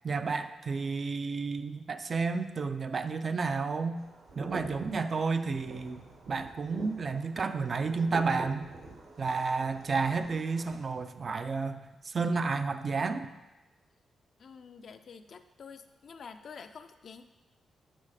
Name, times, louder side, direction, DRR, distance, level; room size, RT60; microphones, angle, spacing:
voice 1, 0.0-4.0 4.4-6.0 6.3-8.7 9.2-13.3, right 4 dB, 40° right, 9 dB, 0.4 m, -31 dB
sound 1, 4.0-10.8, right 2 dB, 70° right, 1.4 m, -46 dB
voice 2, 14.4-17.2, left 5 dB, 55° left, 9 dB, 0.4 m, -48 dB
7.6 x 4.1 x 4.8 m, 1.1 s
cardioid pair, 125°, 0 cm